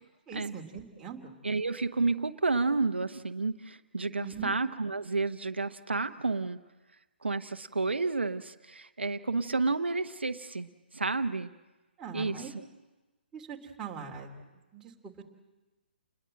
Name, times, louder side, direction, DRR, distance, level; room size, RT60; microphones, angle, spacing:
voice 1, 0.3-1.2 4.2-4.5 12.0-12.5 13.3-14.3 14.7-15.1, right 7 dB, 10° right, -2 dB, 3.2 m, -41 dB
voice 2, 1.4-6.6 7.2-11.5 12.1-12.6, right 3 dB, 80° right, 8 dB, 1.0 m, -31 dB
29.5 x 21.0 x 7.7 m, 1.1 s
figure-of-eight pair, 135°, 6 cm